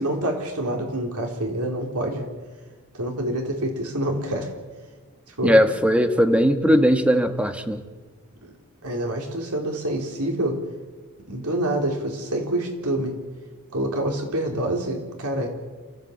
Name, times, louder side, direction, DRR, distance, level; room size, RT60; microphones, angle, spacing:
voice 1, 0.0-2.3 2.9-4.5 5.4-5.6 8.4-8.5 8.8-10.6 11.3-13.1 13.7-15.5, right 1 dB, 85° right, 2 dB, 4.3 m, -26 dB
voice 2, 5.4-7.8, equal, 5° right, 7 dB, 1.5 m, -19 dB
29.0 x 14.5 x 8.4 m, 1.4 s
head